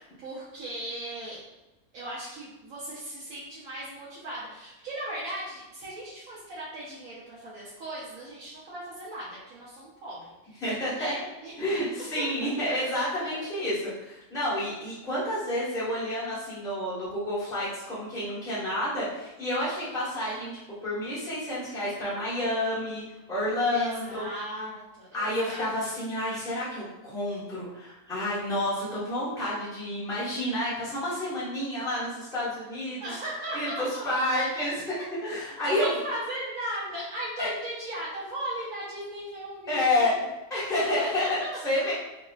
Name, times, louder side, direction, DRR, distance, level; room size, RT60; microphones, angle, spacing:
voice 1, 0.0-1.4 1.9-10.6 10.9-11.5 12.2-12.8 13.2-13.4 23.7-25.7 33.0-34.5 35.8-40.1 40.8-41.6, right 1 dB, 65° right, -8 dB, 1.1 m, -37 dB
voice 2, 10.6-11.1 11.6-13.7 14.0-23.0 23.3-24.3 25.1-33.0 33.5-34.7 35.1-35.9 37.4-37.5 39.7-40.2 40.5-41.9, left 1 dB, 5° left, -10 dB, 1.0 m, -29 dB
3.1 x 2.7 x 2.3 m, 1.0 s
omnidirectional pair, 1.6 m